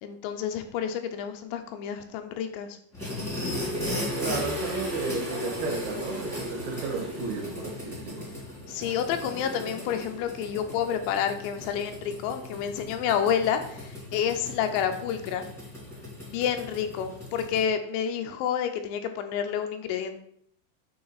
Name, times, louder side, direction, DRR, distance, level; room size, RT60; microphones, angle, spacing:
voice 1, 0.0-2.8 8.7-15.5 16.3-20.2, left 8 dB, 80° left, 7 dB, 2.8 m, -29 dB
sound 1, 2.9-17.6, left 1 dB, ahead, 1.0 m, -36 dB
voice 2, 4.2-8.3, right 4 dB, 70° right, -1 dB, 2.9 m, -33 dB
8.6 x 3.7 x 3.9 m, 0.67 s
omnidirectional pair, 5.1 m